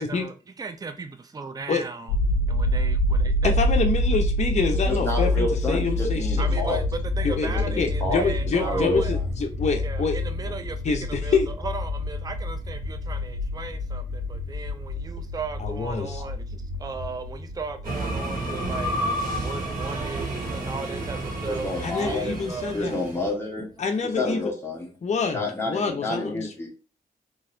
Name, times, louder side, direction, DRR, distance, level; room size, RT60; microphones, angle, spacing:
voice 1, 0.0-2.1 2.5-3.5 6.4-9.1 9.8-19.0 19.3-21.7 22.0-22.8, right 4 dB, 25° right, 0.5 m, -36 dB
sound 1, 2.1-15.9 16.2-17.2, left 1 dB, 80° left, 0.4 m, -27 dB
voice 2, 3.4-6.6 7.2-7.5 7.8-10.2 10.5-10.6 10.8-11.5 15.6-16.2 21.8-23.0 23.8-24.5 25.0-26.7, left 4 dB, 45° left, 0.7 m, -27 dB
voice 3, 4.9-6.8 7.4-8.3 8.6-9.2 21.5-22.5 22.7-23.8 24.2-24.9 25.3-26.7, left 1 dB, 15° left, 1.3 m, -29 dB
sound 2, 6.2-23.3, left 1 dB, 80° right, 1.5 m, -36 dB
sound 3, 17.8-23.3, right 1 dB, 60° right, 1.8 m, -30 dB
3.8 x 2.8 x 2.6 m
wide cardioid pair, 100°, 16 cm